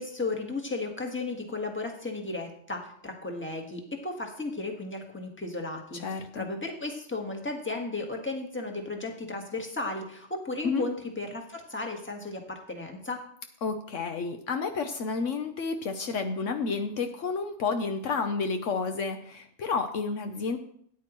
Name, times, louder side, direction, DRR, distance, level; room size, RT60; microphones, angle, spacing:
voice 1, 0.0-13.2, left 2 dB, 10° left, 2 dB, 1.4 m, -35 dB
voice 2, 6.0-6.5 10.6-10.8 13.6-20.6, left 4 dB, 70° left, 6 dB, 1.1 m, -30 dB
13.0 x 9.6 x 3.0 m, 0.65 s
omnidirectional pair, 1.4 m